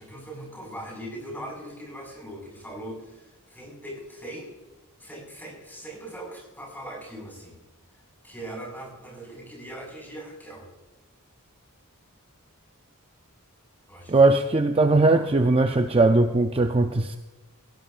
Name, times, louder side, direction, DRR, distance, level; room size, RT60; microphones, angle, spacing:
voice 1, 0.0-4.5 5.0-7.6 8.2-10.7 13.9-14.4 15.1-15.5, right 1 dB, 10° left, 0 dB, 5.4 m, -40 dB
voice 2, 14.1-17.2, right 2 dB, 25° right, 6 dB, 0.5 m, -19 dB
17.5 x 17.0 x 2.5 m, 1.1 s
head